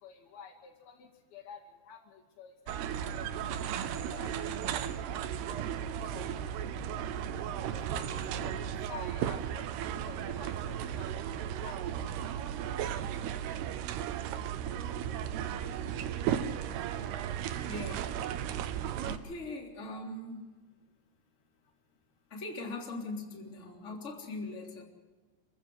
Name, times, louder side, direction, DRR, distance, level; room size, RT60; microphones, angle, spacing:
voice 1, 0.0-1.6 1.9-2.8 4.1-4.5 6.1-6.6 7.9-11.1 11.6-11.8 14.7-14.9, left 7 dB, 70° left, 1 dB, 4.1 m, -50 dB
sound 1, 2.7-19.2, right 9 dB, 85° right, 3.0 m, -35 dB
voice 2, 17.6-18.1 19.0-20.5 22.3-24.8, left 2 dB, 20° left, 0 dB, 3.3 m, -41 dB
27.5 x 15.5 x 7.9 m, 1.3 s
omnidirectional pair, 4.6 m